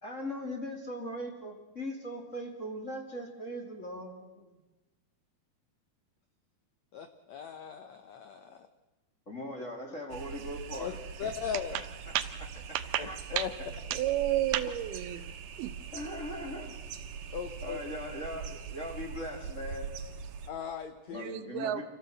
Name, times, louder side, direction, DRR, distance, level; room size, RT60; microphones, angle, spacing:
voice 1, 0.0-4.6 9.3-11.3 11.7-12.1 13.1-13.2 15.9-16.8 17.6-19.9 21.1-21.8, left 1 dB, 25° left, 2 dB, 2.3 m, -40 dB
voice 2, 6.9-8.7 10.8-10.9 11.2-11.8 13.0-13.5 17.3-17.8 20.5-21.3, left 7 dB, 75° left, 9 dB, 1.6 m, -38 dB
sound 1, 10.1-20.5, right 7 dB, 65° right, 2.5 m, -42 dB
voice 3, 12.7-13.1 13.4-13.5 13.9-15.2 15.6-15.7 21.1-21.8, right 13 dB, 85° right, 10 dB, 3.0 m, -30 dB
27.0 x 16.5 x 7.9 m, 1.1 s
omnidirectional pair, 4.4 m